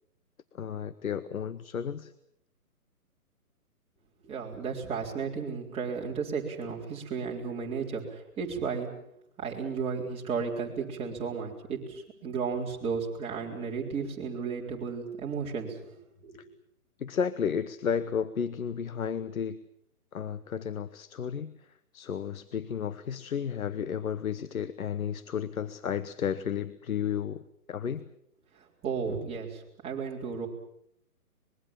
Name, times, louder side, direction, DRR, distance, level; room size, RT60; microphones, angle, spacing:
voice 1, 0.5-2.1 17.0-19.6 20.1-21.5 21.9-27.4 27.7-28.1, left 7 dB, 65° left, 14 dB, 1.1 m, -32 dB
voice 2, 4.2-8.9 9.4-16.4 28.5-30.5, right 5 dB, 15° right, -3 dB, 3.9 m, -34 dB
24.5 x 22.0 x 7.3 m, 0.73 s
hypercardioid pair, 145°, 46 cm